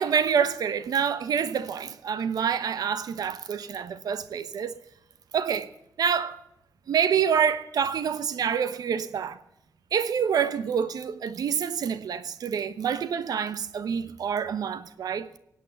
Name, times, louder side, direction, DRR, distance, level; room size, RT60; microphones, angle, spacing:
voice 1, 0.0-4.8 5.3-5.7 6.0-6.4 6.9-9.4 9.9-15.3, right 7 dB, 75° right, 1.0 m, -27 dB
18.0 x 8.5 x 7.0 m
wide cardioid pair, 130°, 7 cm